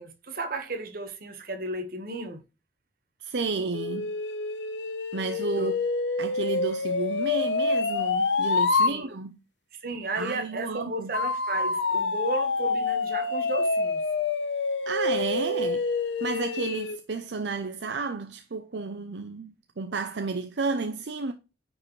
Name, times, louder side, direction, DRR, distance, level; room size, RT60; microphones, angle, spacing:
voice 1, 0.0-2.4 5.6-5.7 8.8-9.1 9.7-14.0, right 2 dB, 55° right, 1.3 m, -34 dB
voice 2, 3.2-4.1 5.1-5.7 6.2-9.4 10.1-11.1 14.9-15.9 16.2-21.3, right 4 dB, 75° right, 0.6 m, -32 dB
sound 1, 3.7-8.9 11.1-17.0, left 3 dB, 85° left, 0.9 m, -27 dB
9.5 x 4.7 x 3.2 m
head